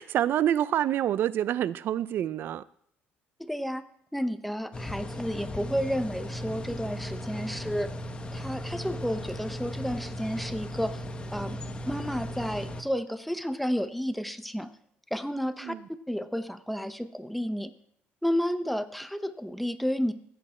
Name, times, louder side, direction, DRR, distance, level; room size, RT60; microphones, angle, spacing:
voice 1, 0.0-2.6 15.6-15.8, right 11 dB, 55° right, 17 dB, 0.5 m, -27 dB
voice 2, 3.4-3.8 4.1-7.9 8.3-11.0 11.3-11.6 11.9-14.7 15.1-15.7 16.1-17.7 18.2-20.1, equal, ahead, 10 dB, 0.8 m, -31 dB
sound 1, 4.7-12.8, equal, 25° left, 1.1 m, -37 dB
15.5 x 8.6 x 4.3 m, 0.67 s
cardioid pair, 120°, 4 cm